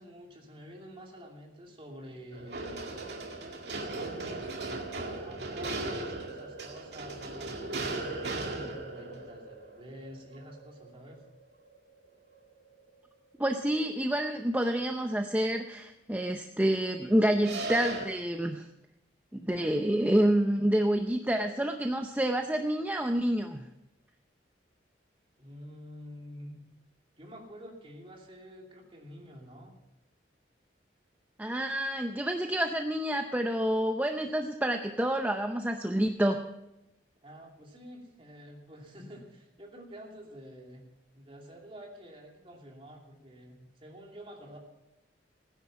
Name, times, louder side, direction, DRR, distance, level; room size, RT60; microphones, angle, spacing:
voice 1, 0.0-2.8 3.8-11.2 25.4-26.7 27.2-29.7 37.2-40.9 41.1-44.6, equal, 30° right, 0 dB, 2.7 m, -48 dB
sound 1, 2.3-13.0 17.3-18.1, right 2 dB, 65° right, 2.1 m, -38 dB
voice 2, 13.4-18.7 19.3-23.7 31.4-36.4, right 1 dB, 10° right, 5 dB, 0.6 m, -28 dB
16.5 x 10.5 x 5.8 m, 0.92 s
head